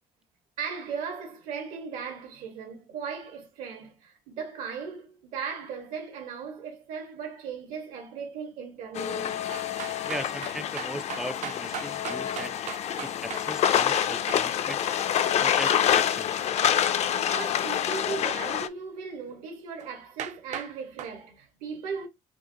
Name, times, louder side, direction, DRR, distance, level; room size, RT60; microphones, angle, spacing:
voice 1, 0.6-9.4 16.9-22.1, right 6 dB, 90° right, 1.6 m, -37 dB
sound 1, 8.9-18.7, left 9 dB, 55° left, 0.4 m, -27 dB
sound 2, 9.5-14.4 19.8-19.9 20.2-20.7 21.0-21.1, right 10 dB, 65° right, 0.5 m, -38 dB
voice 2, 10.0-12.6 13.0-14.8 15.4-16.3, right 1 dB, 5° right, 0.3 m, -38 dB
4.6 x 2.4 x 2.9 m
cardioid pair, 90°, 13 cm